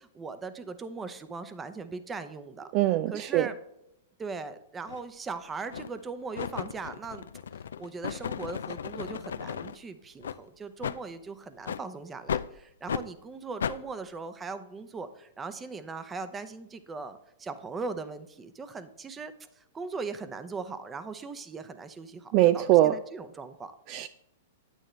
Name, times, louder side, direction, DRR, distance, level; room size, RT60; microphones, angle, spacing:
voice 1, 0.0-2.7 3.1-3.6 4.2-7.3 7.8-23.7, right 4 dB, 15° right, 11 dB, 0.8 m, -39 dB
voice 2, 2.7-3.5 22.3-22.9 23.9-24.1, right 14 dB, 45° right, 12 dB, 0.4 m, -22 dB
sound 1, 4.9-5.0 5.7-6.0 6.4-9.8 10.2-10.4 10.8-11.0 11.6-11.8 12.3-12.5 12.9-13.1 13.6-13.8, left 8 dB, 80° left, 0.4 m, -35 dB
9.0 x 8.7 x 3.2 m, 0.82 s
hypercardioid pair, 120°, 0 cm